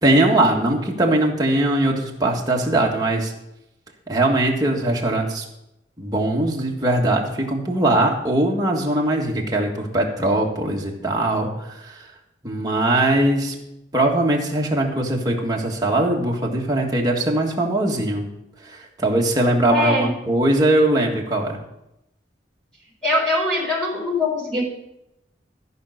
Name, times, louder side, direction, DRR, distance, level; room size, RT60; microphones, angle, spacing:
voice 1, 0.0-3.3 4.1-5.5 6.0-12.1 12.4-13.6 13.9-18.3 18.6-21.6, right 1 dB, 20° right, -1 dB, 1.7 m, -21 dB
voice 2, 19.7-20.1 23.0-24.6, left 2 dB, 5° left, -6 dB, 4.0 m, -22 dB
14.0 x 5.5 x 6.4 m, 0.85 s
head